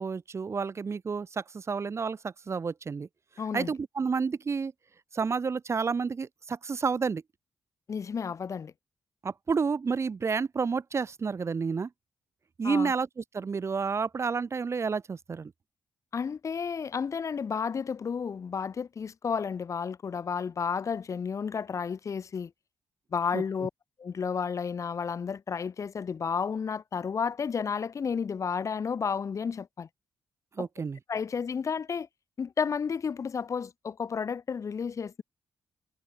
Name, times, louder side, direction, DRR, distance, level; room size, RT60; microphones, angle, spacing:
voice 1, 0.0-3.1 3.5-4.7 5.1-7.2 9.2-11.9 12.6-15.5 23.3-23.4 30.6-31.0, right 5 dB, 45° right, 0.9 m, -30 dB
voice 2, 3.4-3.7 7.9-8.7 12.6-12.9 16.1-22.5 23.1-23.7 24.0-29.9 30.6-30.7 31.1-32.1 32.4-35.2, left 6 dB, 50° left, 0.8 m, -32 dB
supercardioid pair, 50°, 7 cm